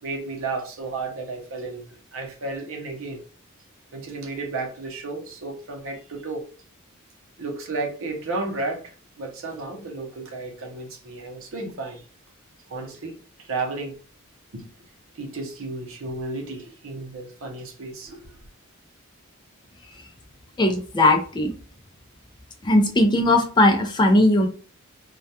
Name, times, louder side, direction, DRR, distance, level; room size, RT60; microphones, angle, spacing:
voice 1, 0.0-3.2 3.9-6.4 7.4-12.0 12.7-14.0 14.5-14.7 15.1-18.3, right 3 dB, 65° right, 0.7 m, -33 dB
voice 2, 20.6-21.5 22.6-24.5, left 1 dB, 20° left, 0.4 m, -18 dB
2.2 x 2.2 x 2.7 m
head